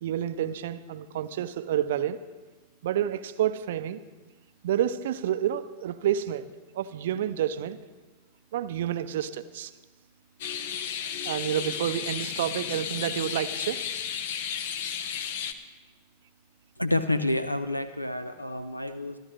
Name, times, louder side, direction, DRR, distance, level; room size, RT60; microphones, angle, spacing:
voice 1, 0.0-2.2 2.8-4.0 4.6-6.5 6.7-7.8 8.5-9.7 11.2-13.8, right 10 dB, 55° right, 0.5 m, -29 dB
sound 1, 10.4-15.5, left 8 dB, 55° left, 0.7 m, -33 dB
voice 2, 16.8-19.2, left 1 dB, 85° left, 0.5 m, -28 dB
24.0 x 12.0 x 3.0 m
figure-of-eight pair, 90°, 0 cm